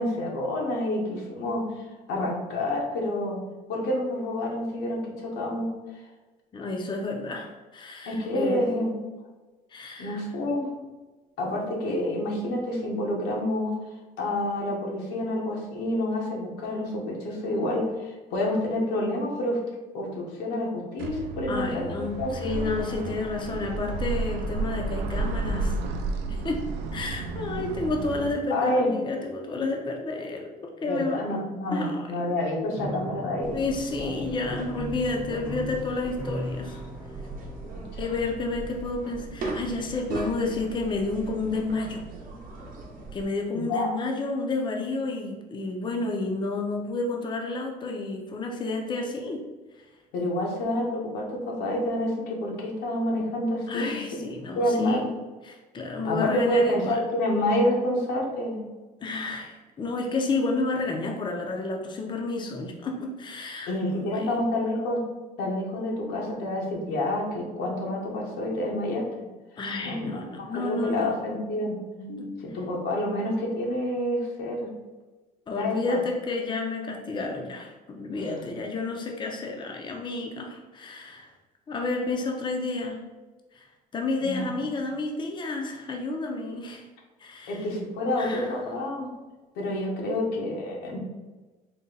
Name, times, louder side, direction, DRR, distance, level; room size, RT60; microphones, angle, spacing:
voice 1, 0.0-3.4 3.7-5.7 8.1-8.9 10.0-10.7 11.4-13.7 14.2-19.6 19.9-21.8 22.1-22.6 28.5-28.9 30.8-33.6 34.0-34.2 37.7-37.8 43.5-44.0 50.1-54.2 54.6-55.1 56.0-58.6 63.7-65.0 65.4-69.0 69.8-74.7 75.6-76.0 78.1-78.3 84.2-84.7 87.5-89.1 89.5-91.0, left 1 dB, 90° left, -1 dB, 1.0 m, -28 dB
voice 2, 6.5-8.7 9.7-10.2 21.5-25.8 26.3-31.4 31.7-32.1 33.5-36.8 38.0-42.1 43.1-49.5 53.7-55.1 55.4-57.0 59.0-63.7 64.1-64.4 69.6-71.2 72.2-72.3 75.5-81.3 81.7-83.1 83.5-83.7 83.9-86.9 87.2-87.7 88.2-88.5, left 3 dB, 25° left, 1 dB, 0.6 m, -31 dB
sound 1, 21.0-28.3, right 3 dB, 85° right, 0.5 m, -32 dB
Piano, 32.8-38.7, equal, 10° right, 0.7 m, -38 dB
sound 2, 33.4-43.3, right 3 dB, 55° right, 0.8 m, -38 dB
4.0 x 2.2 x 3.8 m, 1.2 s
cardioid pair, 110°, 17 cm